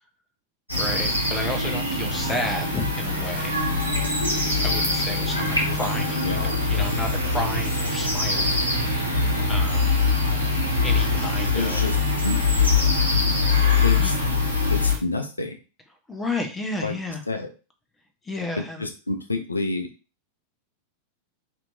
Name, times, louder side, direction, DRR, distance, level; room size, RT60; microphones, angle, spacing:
sound 1, 0.7-15.0, left 3 dB, 90° right, 0.8 m, -23 dB
voice 1, 0.8-3.6 4.6-8.6 9.4-10.0 10.8-11.9 13.9-14.1 16.1-17.2 18.2-18.9, left 1 dB, 15° left, 6 dB, 0.7 m, -32 dB
voice 2, 6.2-6.5 11.5-12.0 12.2-12.4 13.8-14.2 14.7-15.6 16.8-17.0 17.3-17.5 18.8-19.9, left 2 dB, 80° left, 5 dB, 0.4 m, -28 dB
2.9 x 2.6 x 3.3 m, 0.34 s
figure-of-eight pair, 90°, 0 cm